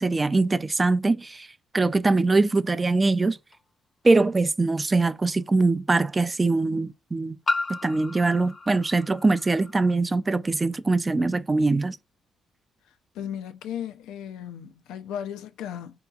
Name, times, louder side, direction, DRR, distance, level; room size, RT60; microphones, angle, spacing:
voice 1, 0.0-1.5 1.7-3.4 4.0-7.4 7.7-12.0, right 3 dB, 25° right, 0.3 m, -22 dB
sound 1, 3.5-3.6 5.3-5.4 7.5-9.9, left 3 dB, 40° left, 0.6 m, -33 dB
voice 2, 13.2-16.0, left 9 dB, 90° left, 0.4 m, -35 dB
3.8 x 2.7 x 2.3 m
cardioid pair, 90°, 0 cm